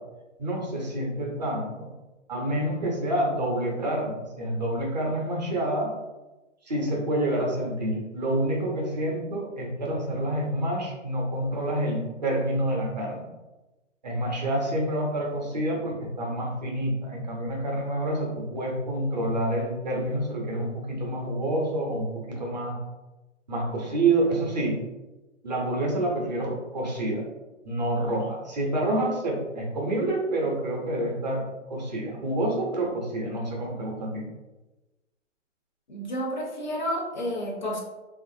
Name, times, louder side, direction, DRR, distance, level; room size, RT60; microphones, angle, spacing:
voice 1, 0.4-1.9 2.3-5.9 6.6-13.3 14.0-22.8 23.5-24.8 25.4-27.3 27.6-31.4 31.7-34.3, right 1 dB, 35° right, -2 dB, 0.5 m, -28 dB
voice 2, 35.9-37.8, equal, 40° left, -1 dB, 0.5 m, -30 dB
2.9 x 2.4 x 2.6 m, 1.1 s
hypercardioid pair, 160°, 38 cm